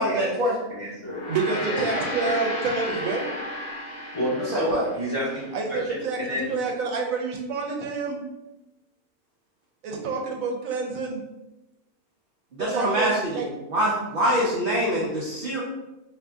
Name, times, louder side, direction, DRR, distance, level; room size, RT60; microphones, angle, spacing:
voice 1, 0.0-0.5 4.5-4.8 12.5-13.4 13.7-15.6, equal, 50° right, -6 dB, 0.7 m, -24 dB
voice 2, 0.7-1.2 1.5-2.4 4.1-6.6, equal, 25° left, -8 dB, 0.9 m, -31 dB
Gong, 1.0-5.6, left 1 dB, 90° left, 1.0 m, -34 dB
voice 3, 1.3-3.3 5.5-8.2 9.8-11.2 12.6-13.5, right 4 dB, 80° right, 1 dB, 1.1 m, -28 dB
2.8 x 2.6 x 3.4 m, 0.98 s
omnidirectional pair, 1.4 m